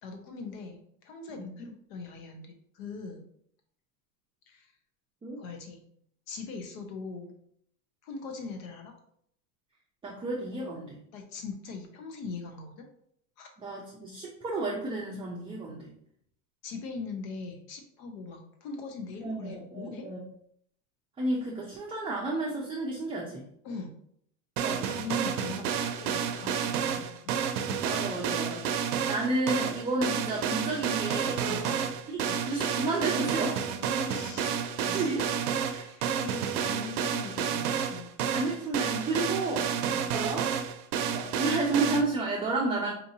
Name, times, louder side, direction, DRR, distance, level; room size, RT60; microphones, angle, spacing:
voice 1, 0.0-3.3 4.5-4.7 5.4-5.8 6.3-7.3 8.0-8.9 11.1-12.9 13.4-13.5 16.6-20.1 23.6-23.9 24.8-27.1 27.6-27.8 31.5-31.9 32.2-32.4 33.8-34.7 35.8-38.1 39.9-40.1, left 4 dB, 65° left, 4 dB, 1.0 m, -41 dB
voice 2, 10.0-11.0 13.6-15.9 19.2-20.2 21.2-23.5 24.6-24.9 27.8-28.7 29.1-31.4 32.1-33.7 34.9-35.8 38.3-39.7 40.1-40.4 41.1-42.9, right 2 dB, 10° right, -3 dB, 0.5 m, -31 dB
sound 1, 24.6-42.0, right 7 dB, 85° right, 0.6 m, -30 dB
4.2 x 2.7 x 2.7 m, 0.68 s
supercardioid pair, 110°, 44 cm